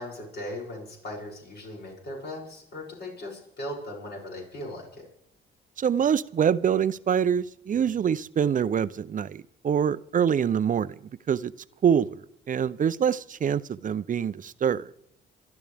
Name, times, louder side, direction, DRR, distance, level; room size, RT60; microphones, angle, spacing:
voice 1, 0.0-5.1, left 1 dB, 60° left, -3 dB, 7.0 m, -38 dB
voice 2, 5.8-10.9 11.3-11.5 11.8-12.2 12.5-14.9, right 8 dB, 40° right, 16 dB, 0.6 m, -25 dB
28.5 x 11.5 x 3.5 m, 0.77 s
cardioid pair, 90°, 20 cm